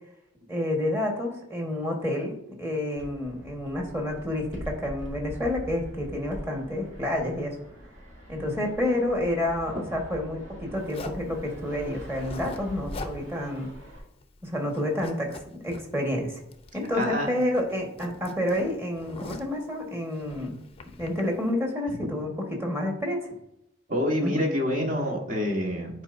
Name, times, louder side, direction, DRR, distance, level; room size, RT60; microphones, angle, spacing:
voice 1, 0.5-2.3 2.6-7.6 8.3-13.7 14.4-16.4 16.7-20.6 21.0-23.3 24.2-24.4, left 1 dB, 15° right, 1 dB, 1.5 m, -29 dB
Fixed-wing aircraft airplane, 3.0-14.0, equal, 80° right, 2.5 m, -43 dB
Zipper (clothing), 10.9-11.3 12.0-12.6 12.9-13.2 13.5-13.6 14.0-14.4 14.7-15.8 16.5-17.2 17.4-19.6 20.2-21.2, left 3 dB, 30° left, 0.6 m, -42 dB
voice 2, 16.9-17.3 21.9-22.0 23.9-26.0, equal, 45° right, 0 dB, 1.6 m, -27 dB
10.0 x 4.7 x 2.6 m, 0.79 s
head